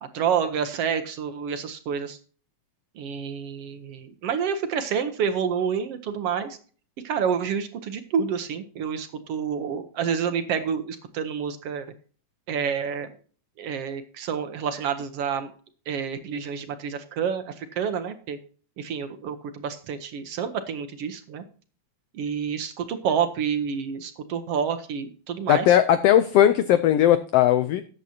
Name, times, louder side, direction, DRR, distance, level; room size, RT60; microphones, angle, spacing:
voice 1, 0.0-2.2 3.0-6.6 7.0-11.9 12.5-13.1 13.6-15.5 15.9-18.4 18.8-21.4 22.1-25.8, right 7 dB, 65° right, 8 dB, 1.7 m, -28 dB
voice 2, 25.5-27.8, left 11 dB, 85° left, 12 dB, 1.4 m, -18 dB
13.5 x 9.1 x 2.8 m, 0.42 s
omnidirectional pair, 3.4 m